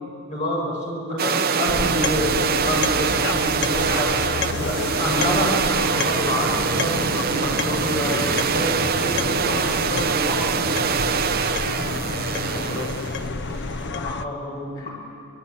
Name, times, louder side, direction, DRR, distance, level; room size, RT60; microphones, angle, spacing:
voice 1, 0.3-2.3 2.6-10.6 14.0-14.9, equal, 35° left, -3 dB, 7.7 m, -28 dB
sound 1, 1.2-13.2, right 6 dB, 45° right, 0.7 m, -24 dB
sound 2, 1.7-14.3, left 4 dB, 55° left, 0.8 m, -29 dB
sound 3, 3.4-13.9, right 1 dB, 65° right, 3.8 m, -41 dB
voice 2, 11.2-12.1 12.5-13.0 13.6-13.8 14.7-14.9, left 1 dB, 80° left, -2 dB, 3.2 m, -37 dB
25.5 x 20.0 x 9.6 m, 2.5 s
head